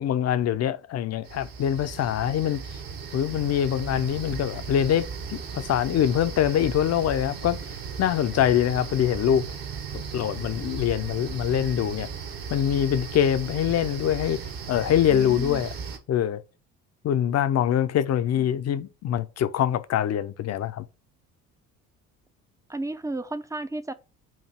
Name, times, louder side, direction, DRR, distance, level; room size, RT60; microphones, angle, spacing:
voice 1, 0.0-2.8 3.1-7.6 8.0-9.4 9.9-12.1 12.5-14.4 14.7-15.7 16.1-16.4 17.0-20.8, left 10 dB, 35° left, 0.6 m, -24 dB
sound 1, 1.2-16.0, right 6 dB, 55° right, 1.3 m, -36 dB
voice 2, 15.1-15.6 18.4-18.5 22.7-23.9, right 2 dB, 10° right, 0.5 m, -33 dB
7.3 x 2.6 x 5.0 m
figure-of-eight pair, 50°, 43 cm